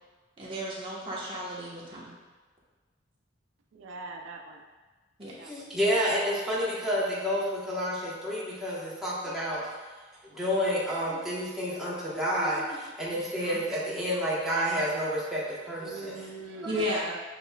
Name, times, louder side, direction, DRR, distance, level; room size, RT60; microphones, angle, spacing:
voice 1, 0.4-2.1 5.2-5.3 13.1-13.6 16.6-17.0, equal, 30° right, -7 dB, 1.1 m, -34 dB
voice 2, 3.7-4.6 5.4-5.8 15.8-17.2, right 3 dB, 80° right, 3 dB, 0.4 m, -41 dB
voice 3, 5.4-9.6 10.3-16.1, equal, ahead, -8 dB, 1.0 m, -29 dB
7.6 x 3.0 x 2.3 m, 1.3 s
head